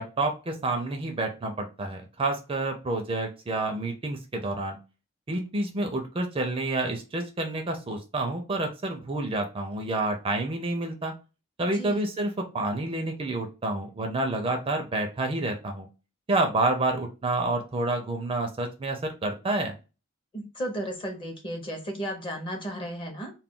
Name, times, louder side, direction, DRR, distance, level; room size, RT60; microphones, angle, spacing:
voice 1, 0.0-4.8 5.3-11.1 11.6-15.9 16.3-19.7, right 2 dB, 25° right, 5 dB, 0.4 m, -29 dB
voice 2, 11.7-12.0 20.3-23.3, right 1 dB, 25° left, 3 dB, 0.7 m, -34 dB
2.3 x 2.2 x 3.6 m, 0.31 s
head